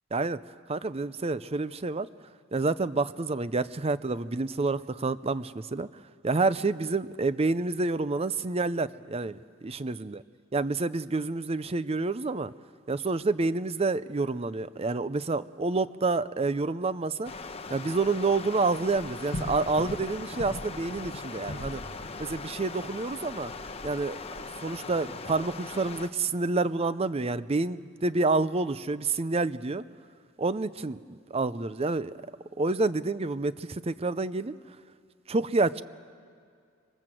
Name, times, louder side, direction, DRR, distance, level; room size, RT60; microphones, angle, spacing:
voice 1, 0.7-2.1 2.5-5.9 6.2-10.2 10.5-12.5 12.9-17.3 17.7-21.8 22.2-23.5 23.8-24.2 24.6-29.8 30.4-32.1 32.6-34.5 35.3-35.8, right 3 dB, 30° right, 15 dB, 0.6 m, -28 dB
Stream, 17.2-26.1, left 4 dB, 30° left, 1.0 m, -40 dB
sound 1, 18.9-22.3 23.5-24.4, equal, 50° left, 5.3 m, -39 dB
26.0 x 24.0 x 7.8 m, 2.2 s
head